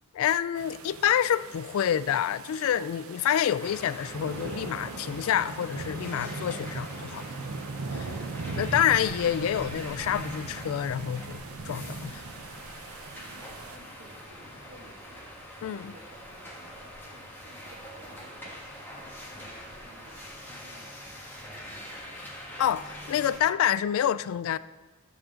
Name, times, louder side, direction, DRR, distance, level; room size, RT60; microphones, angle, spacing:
voice 1, 0.1-7.3 7.9-8.1 8.6-12.2 15.6-15.9 22.2-22.3 22.6-24.6, left 9 dB, 75° left, 0.3 m, -27 dB
sound 1, 0.6-13.8, right 3 dB, 85° right, 0.7 m, -39 dB
sound 2, 3.6-23.4, equal, 10° left, 1.5 m, -44 dB
sound 3, 8.7-23.5, equal, 30° right, 2.2 m, -57 dB
voice 2, 13.1-22.1 22.4-23.1, equal, 65° right, 2.0 m, -55 dB
13.0 x 7.8 x 3.7 m
head